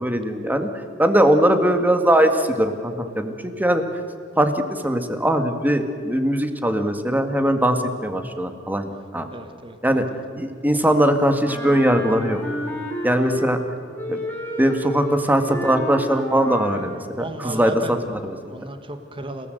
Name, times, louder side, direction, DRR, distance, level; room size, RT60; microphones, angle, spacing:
voice 1, 0.0-3.8 4.4-9.3 9.8-10.1 10.3-12.4 13.0-13.6 14.1-14.2 14.6-18.0 18.2-18.4, right 1 dB, 10° right, 7 dB, 1.9 m, -20 dB
voice 2, 9.3-10.0 17.2-19.5, right 2 dB, 25° right, 7 dB, 1.5 m, -35 dB
Wind instrument woodwind instrument, 11.4-13.6 13.9-17.0, equal, 10° left, 3.9 m, -31 dB
29.5 x 18.5 x 8.0 m, 2.3 s
head